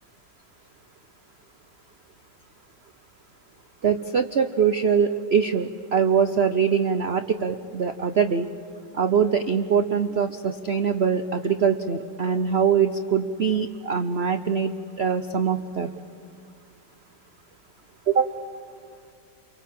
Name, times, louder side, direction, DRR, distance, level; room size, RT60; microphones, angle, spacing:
voice 1, 3.8-8.5 8.9-15.9 18.1-18.3, right 6 dB, 60° right, 9 dB, 0.6 m, -23 dB
30.0 x 23.5 x 7.5 m, 2.3 s
omnidirectional pair, 2.1 m